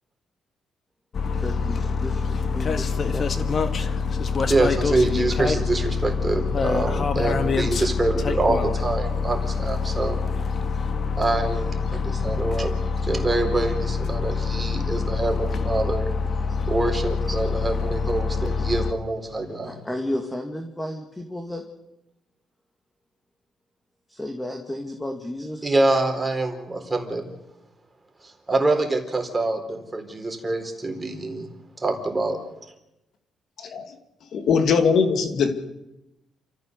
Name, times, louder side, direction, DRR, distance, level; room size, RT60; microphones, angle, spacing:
sound 1, 1.1-18.9, left 5 dB, 50° left, 1.7 m, -25 dB
voice 1, 1.4-3.5 19.6-21.6 24.1-25.7, left 1 dB, 10° left, 4 dB, 2.2 m, -33 dB
voice 2, 4.5-10.2 11.1-12.7 13.0-16.1 16.7-19.8 25.6-27.3 28.5-31.5 31.8-32.4, right 2 dB, 20° right, 4 dB, 4.0 m, -25 dB
voice 3, 33.6-33.9 34.3-35.5, left 5 dB, 65° left, 7 dB, 2.4 m, -21 dB
29.0 x 14.5 x 6.8 m, 0.93 s
cardioid pair, 90°, 0 cm